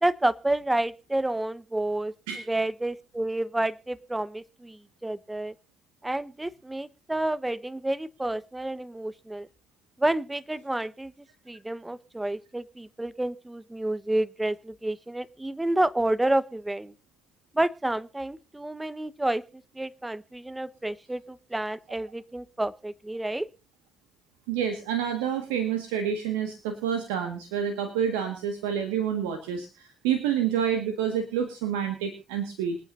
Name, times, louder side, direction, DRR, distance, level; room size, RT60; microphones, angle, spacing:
voice 1, 0.0-2.1 2.5-5.5 6.0-9.5 10.0-11.1 11.5-16.9 17.5-23.5, right 1 dB, 15° right, 16 dB, 1.2 m, -29 dB
voice 2, 24.5-32.8, right 8 dB, 85° right, 7 dB, 1.8 m, -28 dB
26.0 x 9.3 x 2.7 m, 0.30 s
hypercardioid pair, 45°, 0 cm